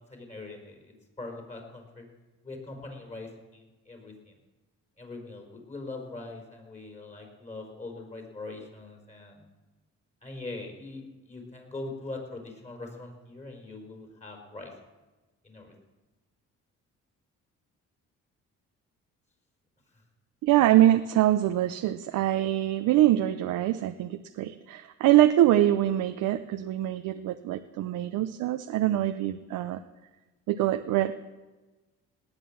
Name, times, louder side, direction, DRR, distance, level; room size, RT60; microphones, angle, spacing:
voice 1, 0.1-2.1 2.4-4.3 5.0-9.4 10.2-14.7 15.4-15.7, left 2 dB, 25° left, 2 dB, 4.7 m, -42 dB
voice 2, 20.4-29.8 30.5-31.1, right 13 dB, 90° right, 8 dB, 0.7 m, -24 dB
18.5 x 9.1 x 7.4 m, 1.2 s
cardioid pair, 90°, 30 cm